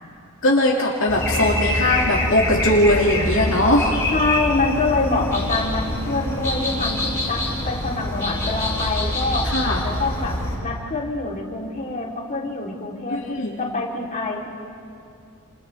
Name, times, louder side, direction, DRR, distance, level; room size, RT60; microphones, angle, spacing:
voice 1, 0.4-4.0 9.5-9.8 13.1-13.5, left 1 dB, 65° left, -3 dB, 2.2 m, -19 dB
sound 1, 1.1-10.6, left 1 dB, 15° left, 6.9 m, -25 dB
voice 2, 4.1-13.2 13.6-14.5, left 3 dB, 35° left, -3 dB, 3.4 m, -25 dB
29.0 x 28.5 x 3.4 m, 2.4 s
head